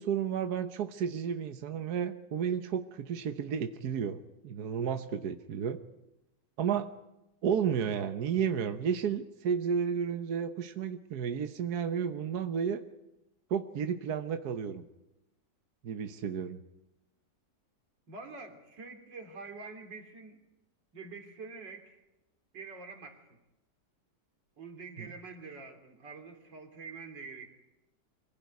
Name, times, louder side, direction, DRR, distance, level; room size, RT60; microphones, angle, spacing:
voice 1, 0.0-5.8 6.6-6.9 7.4-12.8 13.5-14.8 15.8-16.6, right 7 dB, 65° right, 8 dB, 1.5 m, -32 dB
voice 2, 18.1-20.4 20.9-22.0 22.5-23.4 24.6-27.5, right 4 dB, 85° right, 5 dB, 3.7 m, -46 dB
25.5 x 16.5 x 9.5 m, 0.94 s
omnidirectional pair, 1.9 m